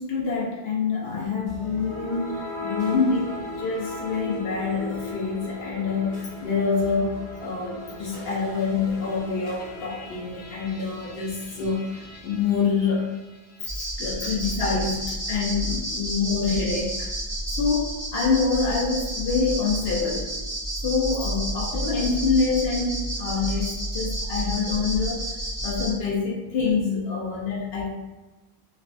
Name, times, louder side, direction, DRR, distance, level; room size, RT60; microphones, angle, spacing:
voice 1, 0.0-13.1 14.0-17.1 17.5-20.3 20.7-25.3 25.6-27.9, left 4 dB, 70° left, -4 dB, 0.8 m, -26 dB
sound 1, 1.5-13.8, left 2 dB, 85° left, 1.2 m, -37 dB
sound 2, 13.7-25.9, right 1 dB, 20° left, 0.8 m, -30 dB
2.4 x 2.1 x 2.5 m, 1.1 s
omnidirectional pair, 1.1 m